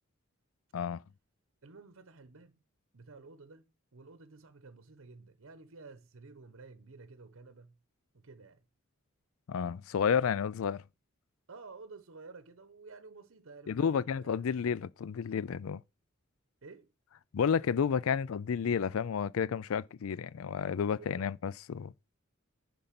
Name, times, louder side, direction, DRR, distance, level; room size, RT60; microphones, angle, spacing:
voice 1, 1.6-2.6 2.9-3.6 3.9-7.8 8.1-8.6 11.5-14.4 16.6-16.9 20.9-21.3, right 3 dB, 70° right, 0.9 m, -52 dB
voice 2, 9.5-10.8 13.7-15.8 17.3-21.9, left 7 dB, 70° left, 0.4 m, -31 dB
10.5 x 5.4 x 5.9 m
head